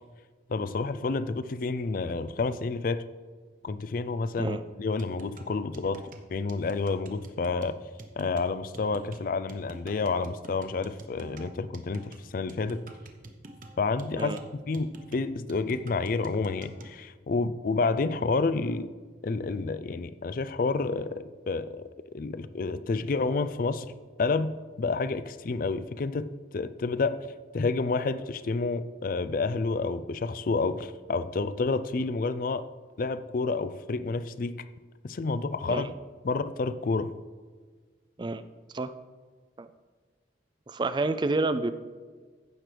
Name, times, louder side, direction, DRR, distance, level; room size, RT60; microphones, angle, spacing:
voice 1, 0.5-3.0 3.6-6.0 6.3-7.8 8.2-12.8 13.8-14.4 14.7-18.9 19.2-21.8 22.1-23.9 24.2-27.2 27.5-32.7 33.0-34.5 35.0-35.9 36.2-37.1, left 3 dB, 50° left, 13 dB, 0.4 m, -29 dB
sound 1, 5.0-17.0, right 2 dB, 50° right, 0.8 m, -48 dB
voice 2, 40.7-41.7, right 2 dB, 25° right, 12 dB, 0.4 m, -29 dB
15.0 x 6.1 x 3.3 m, 1.5 s
head